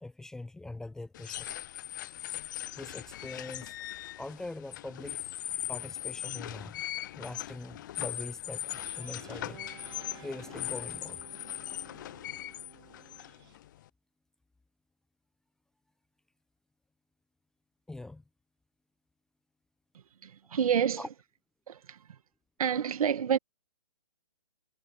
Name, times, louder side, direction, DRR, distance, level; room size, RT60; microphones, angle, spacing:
voice 1, 0.0-1.5 2.8-3.7 4.2-5.2 5.7-6.8 7.1-9.6 10.2-11.2 17.9-18.2 21.0-21.1, left 2 dB, 5° left, 0.9 m, -42 dB
sound 1, 1.1-13.9, left 13 dB, 30° left, 0.5 m, -40 dB
Guitar, 8.8-13.6, right 13 dB, 40° right, 5.0 m, -53 dB
voice 2, 20.2-21.1 21.7-22.0 22.6-23.4, right 8 dB, 60° right, 1.9 m, -28 dB
hypercardioid pair, 150°, 21 cm